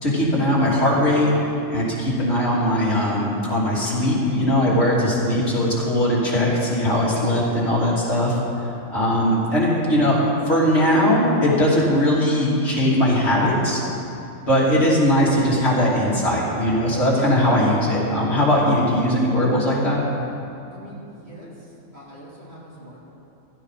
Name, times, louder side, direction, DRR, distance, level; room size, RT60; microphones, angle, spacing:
voice 1, 0.0-1.3 1.7-8.4 8.9-10.2 10.5-13.8 14.4-20.0, left 1 dB, 55° left, -6 dB, 3.1 m, -20 dB
voice 2, 20.7-21.5 21.9-23.1, equal, 50° right, -7 dB, 3.5 m, -43 dB
15.5 x 14.0 x 4.1 m, 2.7 s
omnidirectional pair, 1.4 m